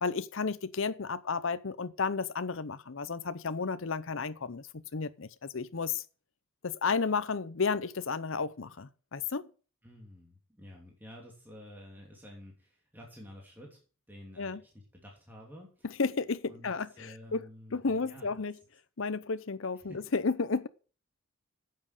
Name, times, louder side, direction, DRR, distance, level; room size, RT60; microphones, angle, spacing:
voice 1, 0.0-6.0 6.6-9.5 14.4-14.6 16.0-17.4 17.7-18.5 19.0-20.7, left 4 dB, 60° left, 0.7 m, -32 dB
voice 2, 9.8-13.8 14.1-15.9 16.5-18.5 19.7-20.0, equal, 10° right, 2.9 m, -51 dB
10.5 x 7.7 x 6.7 m
head